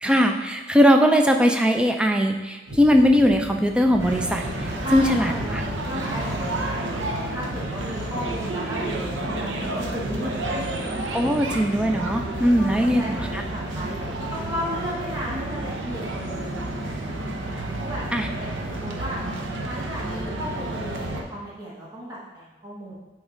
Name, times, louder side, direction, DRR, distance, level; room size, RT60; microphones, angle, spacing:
voice 1, 0.0-4.4 4.9-5.6 11.1-13.4 18.1-18.3, equal, 5° right, 4 dB, 0.3 m, -20 dB
sound 1, 2.7-10.7, equal, 65° right, 1.1 m, -40 dB
sound 2, 4.0-21.2, right 1 dB, 85° right, 0.7 m, -30 dB
voice 2, 4.8-10.4 12.6-16.6 17.8-18.0 18.3-19.2 19.6-22.9, equal, 20° right, -7 dB, 1.0 m, -34 dB
8.4 x 3.1 x 3.8 m, 1.2 s
head